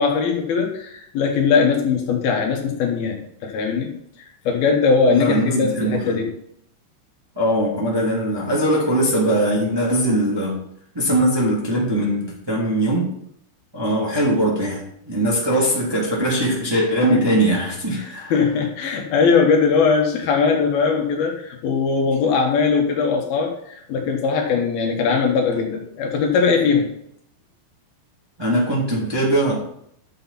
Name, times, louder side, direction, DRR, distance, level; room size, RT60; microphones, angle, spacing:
voice 1, 0.0-3.2 3.4-3.9 4.4-6.3 17.9-26.9, left 5 dB, 75° left, 1 dB, 3.4 m, -20 dB
voice 2, 5.1-6.2 7.4-10.6 10.9-13.1 13.7-18.4 28.4-29.6, right 1 dB, 10° right, -5 dB, 2.0 m, -21 dB
11.5 x 7.1 x 4.2 m, 0.72 s
omnidirectional pair, 4.4 m